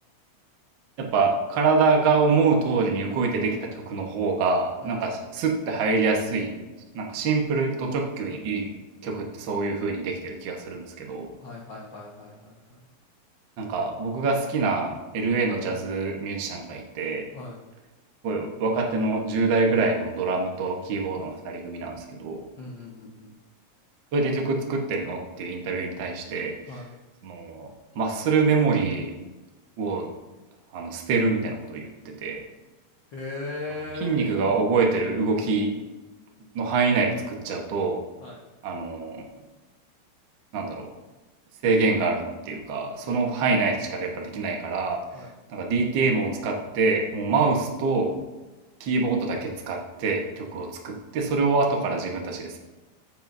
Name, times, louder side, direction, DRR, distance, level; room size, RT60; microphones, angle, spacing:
voice 1, 1.0-6.6 6.9-8.7 9.0-11.3 13.6-17.3 18.2-22.4 24.1-26.6 27.2-29.1 29.8-30.1 30.7-32.4 34.0-35.8 36.5-38.0 38.6-39.2 40.5-40.9 41.6-45.0 45.5-48.2 48.8-52.6, right 4 dB, 80° right, 1 dB, 1.0 m, -25 dB
voice 2, 11.4-12.8 17.3-17.6 22.6-23.3 26.7-26.9 33.1-34.6 38.2-38.4 43.0-43.4 45.1-45.3, left 3 dB, 80° left, -4 dB, 1.0 m, -38 dB
14.5 x 7.1 x 2.7 m, 1.2 s
omnidirectional pair, 4.1 m